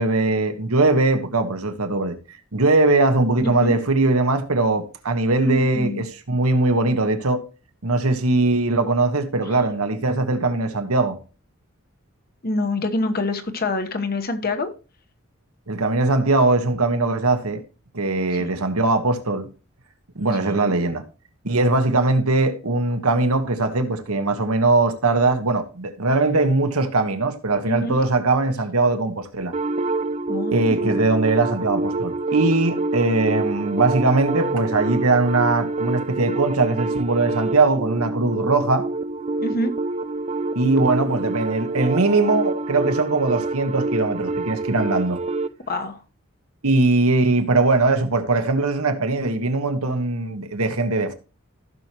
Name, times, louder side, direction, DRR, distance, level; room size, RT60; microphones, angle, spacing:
voice 1, 0.0-2.1 2.5-7.4 7.8-11.2 15.7-17.6 17.9-19.5 20.1-21.0 21.4-29.5 30.5-38.8 40.5-45.2 46.6-51.1, right 2 dB, 90° right, 1.4 m, -20 dB
voice 2, 3.4-3.8 5.4-6.1 12.4-14.7 18.4-18.5 20.4-20.7 27.7-28.0 30.3-31.0 39.4-39.7 45.7-46.0, left 2 dB, 45° left, 1.1 m, -26 dB
sound 1, 29.5-45.5, right 2 dB, 30° right, 0.4 m, -27 dB
15.5 x 6.2 x 3.0 m
head